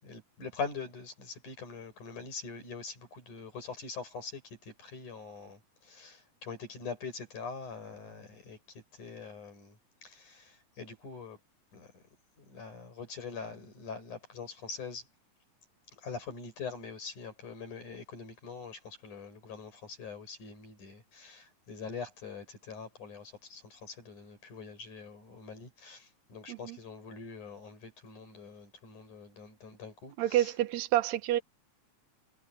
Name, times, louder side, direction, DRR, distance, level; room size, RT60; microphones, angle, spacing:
voice 1, 0.0-11.4 11.7-12.0 12.4-15.1 15.9-30.5, left 5 dB, 80° left, 8.1 m, -44 dB
voice 2, 30.2-31.4, right 13 dB, 70° right, 2.2 m, -28 dB
omnidirectional pair, 3.5 m